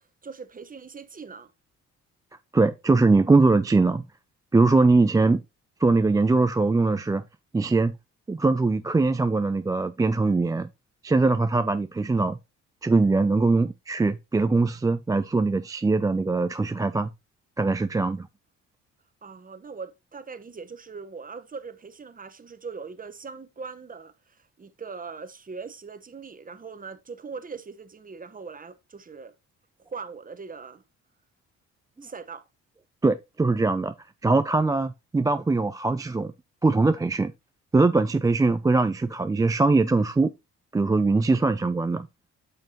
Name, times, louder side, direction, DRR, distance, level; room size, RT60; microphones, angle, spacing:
voice 1, 0.0-1.5 19.2-29.3 29.8-30.8 32.0-32.4, right 5 dB, 30° right, 1.1 m, -41 dB
voice 2, 2.5-4.0 4.5-5.4 5.8-7.2 7.5-7.9 8.3-10.7 11.0-12.4 12.8-17.1 17.6-18.3 33.0-33.9 34.2-36.3 36.6-37.3 37.7-40.3 40.7-42.1, right 3 dB, 10° right, 0.3 m, -22 dB
8.8 x 5.7 x 2.9 m
cardioid pair, 90°, 30 cm